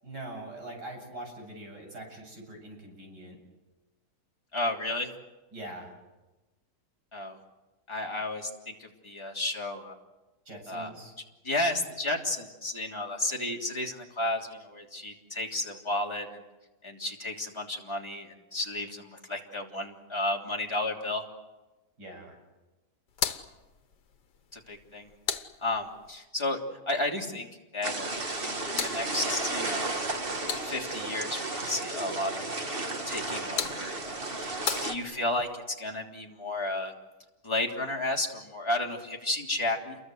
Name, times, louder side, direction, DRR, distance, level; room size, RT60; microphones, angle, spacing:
voice 1, 0.0-3.4 5.5-6.0 10.5-11.1 22.0-22.4, right 1 dB, 85° right, 1 dB, 8.5 m, -43 dB
voice 2, 4.5-5.1 7.1-7.4 7.9-9.9 10.7-10.9 11.4-16.4 16.8-21.2 24.5-25.1 25.6-26.6 26.9-27.5 27.7-28.1 28.4-29.8 30.6-32.7 33.1-34.5 34.8-36.9 37.4-40.0, left 2 dB, 15° left, -1 dB, 3.2 m, -32 dB
sound 1, 23.1-26.2 28.2-31.1 33.1-35.5, left 7 dB, 85° left, 1.8 m, -38 dB
sound 2, 27.8-35.0, right 2 dB, 35° right, 2.1 m, -33 dB
29.0 x 23.0 x 8.0 m, 1.1 s
omnidirectional pair, 1.8 m